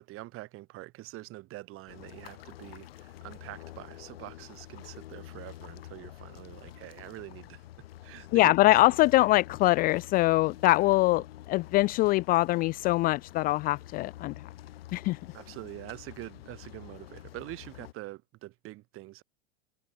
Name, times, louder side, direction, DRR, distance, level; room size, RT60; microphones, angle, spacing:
voice 1, 0.0-7.7 8.0-9.3 11.1-11.2 15.3-19.2, right 18 dB, 45° right, 7.0 m, -45 dB
sound 1, 1.9-17.9, left 14 dB, 65° left, 1.4 m, -48 dB
voice 2, 8.3-11.2 11.5-14.3 14.9-15.2, left 19 dB, 30° left, 0.4 m, -23 dB
figure-of-eight pair, 90°, 32 cm